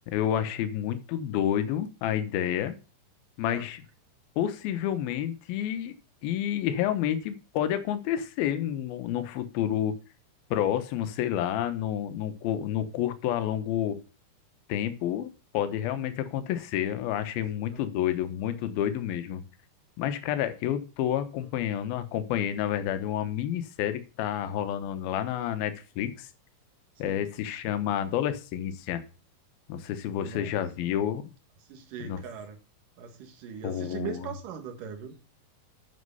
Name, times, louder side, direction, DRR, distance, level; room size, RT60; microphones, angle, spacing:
voice 1, 0.1-2.8 3.4-3.8 4.4-5.9 6.2-10.0 10.5-14.0 14.7-19.4 20.0-26.3 27.0-29.0 29.7-31.3 32.0-32.2 33.6-34.3, left 10 dB, 75° left, 10 dB, 2.8 m, -29 dB
voice 2, 30.1-30.5 31.7-32.6 33.0-35.2, right 7 dB, 65° right, 5 dB, 3.0 m, -40 dB
9.7 x 6.4 x 5.5 m, 0.33 s
omnidirectional pair, 4.5 m